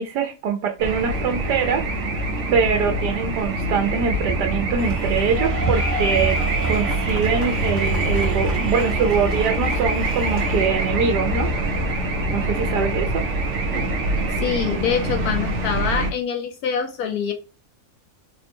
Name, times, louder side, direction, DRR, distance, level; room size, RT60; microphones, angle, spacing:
voice 1, 0.0-2.0 2.5-6.4 6.7-11.9 12.3-13.4, right 6 dB, 85° right, 1.2 m, -23 dB
sound 1, 0.8-16.1, right 2 dB, 60° right, 0.8 m, -24 dB
sound 2, 4.8-10.7, equal, 35° right, 1.0 m, -31 dB
voice 2, 14.4-17.3, left 7 dB, 75° left, 1.0 m, -25 dB
4.1 x 2.1 x 2.9 m
omnidirectional pair, 1.7 m